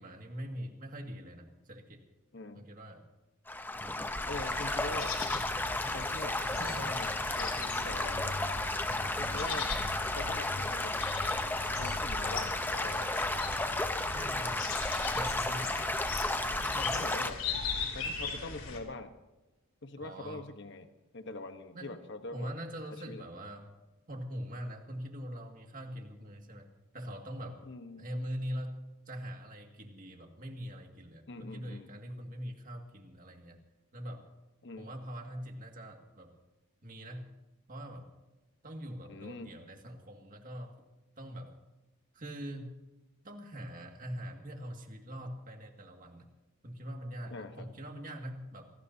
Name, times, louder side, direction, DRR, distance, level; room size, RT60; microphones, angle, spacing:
voice 1, 0.0-2.0 2.5-3.0 3.7-4.0 6.6-7.0 14.1-14.8 15.1-15.9 16.6-17.0 20.0-20.4 21.7-21.9 22.3-23.7 24.1-27.6 28.0-33.6 33.9-34.2 34.8-36.3 36.8-37.3 37.7-38.1 38.6-40.8 41.2-41.6 42.1-42.8 43.2-46.3 46.6-48.7, equal, 40° right, 3 dB, 2.1 m, -43 dB
voice 2, 2.3-2.7 3.9-5.1 5.9-8.4 9.2-9.7 10.1-11.0 11.8-13.1 16.9-17.4 17.9-19.2 19.8-20.9 21.1-22.5 22.9-23.2 27.7-28.1 31.3-31.9 34.6-34.9 39.1-39.5 47.3-47.7, left 2 dB, 55° left, 8 dB, 1.1 m, -43 dB
Stream / Gurgling / Trickle dribble, 3.5-17.3, left 2 dB, 10° left, 0.8 m, -33 dB
sound 1, 4.3-18.8, left 4 dB, 70° left, 3.1 m, -39 dB
26.5 x 18.5 x 2.8 m, 1.1 s
head